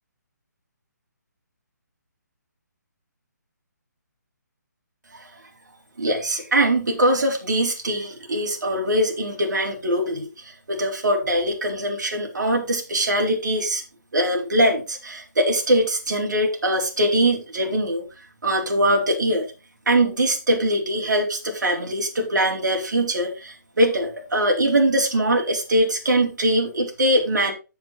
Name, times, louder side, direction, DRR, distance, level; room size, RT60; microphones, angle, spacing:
voice 1, 6.0-13.8 14.1-18.0 18.4-19.5 19.9-27.5, right 1 dB, 75° right, 1 dB, 4.2 m, -22 dB
7.8 x 7.6 x 4.3 m, 0.31 s
hypercardioid pair, 155°, 10 cm